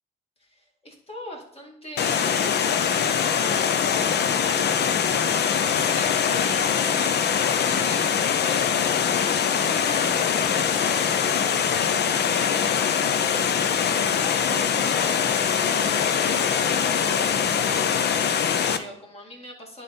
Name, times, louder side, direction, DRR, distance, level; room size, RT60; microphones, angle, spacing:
voice 1, 0.4-2.6 5.6-12.0 13.8-19.8, equal, 30° left, -1 dB, 2.2 m, -41 dB
Water, 2.0-18.8, left 7 dB, 55° left, 0.6 m, -23 dB
10.5 x 4.0 x 4.2 m, 0.74 s
cardioid pair, 90°, 20 cm